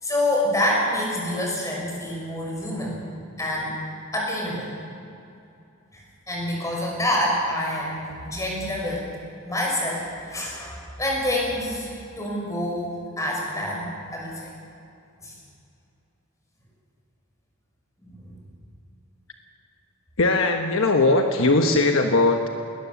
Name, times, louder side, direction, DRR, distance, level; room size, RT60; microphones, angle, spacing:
voice 1, 0.0-3.0 3.4-3.7 4.1-4.7 5.9-6.0 6.3-9.0 9.5-12.9 13.2-14.3 15.2-15.3 18.0-18.3, left 1 dB, 15° left, -2 dB, 6.5 m, -27 dB
voice 2, 20.2-22.5, left 2 dB, 65° left, 4 dB, 1.3 m, -19 dB
20.5 x 20.0 x 7.2 m, 2.6 s
head